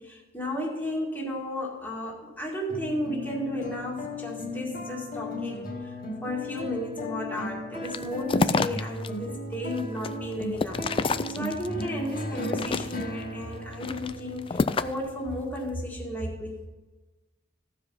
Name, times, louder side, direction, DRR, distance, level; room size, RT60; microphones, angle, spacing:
voice 1, 0.0-5.9 6.2-16.6, left 1 dB, 10° left, -3 dB, 1.9 m, -34 dB
sound 1, 2.7-15.4, left 1 dB, 50° left, 2.0 m, -36 dB
sound 2, 7.8-9.1 9.5-11.8 12.3-13.2 13.7-15.1, left 4 dB, 30° left, 0.3 m, -28 dB
15.0 x 5.0 x 5.5 m, 1.2 s
head